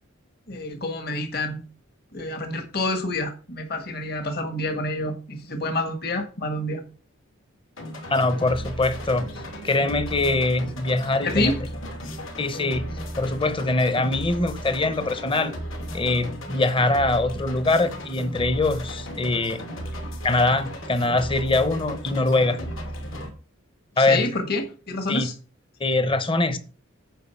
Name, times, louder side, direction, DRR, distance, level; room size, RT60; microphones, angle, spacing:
voice 1, 0.5-1.6 2.1-6.8 11.2-11.6 24.0-25.3, left 2 dB, 45° left, 1.6 m, -28 dB
sound 1, 7.8-23.3, equal, 70° left, 2.6 m, -35 dB
voice 2, 8.1-9.3 9.6-11.5 12.4-12.9 13.2-15.5 15.9-19.6 20.2-22.6 24.0-24.3 25.1-25.3 25.8-26.6, left 2 dB, 25° left, 0.9 m, -23 dB
9.1 x 5.1 x 7.0 m
head